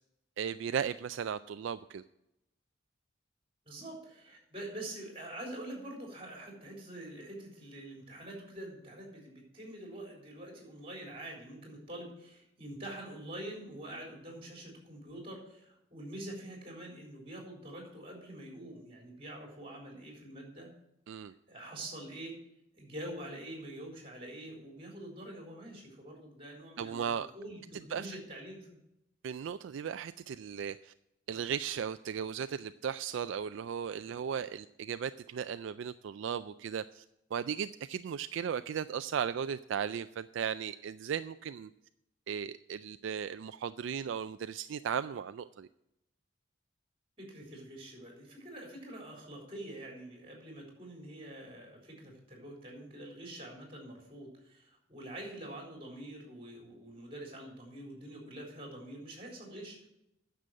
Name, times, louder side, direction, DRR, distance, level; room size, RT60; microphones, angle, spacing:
voice 1, 0.4-2.0 21.1-21.3 26.8-27.3 27.9-28.1 29.2-30.9 31.3-37.0 37.3-41.7 42.3-45.7, right 7 dB, 65° right, 12 dB, 0.3 m, -36 dB
voice 2, 3.7-20.7 21.5-22.4 22.7-28.6 47.2-59.9, right 1 dB, 30° right, 0 dB, 3.7 m, -45 dB
9.8 x 6.9 x 7.6 m, 0.85 s
head